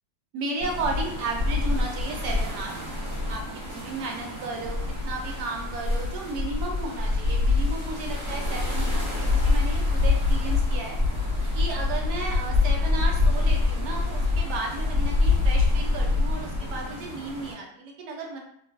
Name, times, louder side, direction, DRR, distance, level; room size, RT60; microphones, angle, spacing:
voice 1, 0.3-2.8 3.3-3.4 3.7-11.0 11.5-18.4, right 3 dB, 70° right, 1 dB, 1.1 m, -34 dB
sound 1, 0.6-17.5, left 3 dB, 30° right, 1.3 m, -25 dB
2.9 x 2.3 x 2.5 m, 0.68 s
omnidirectional pair, 2.0 m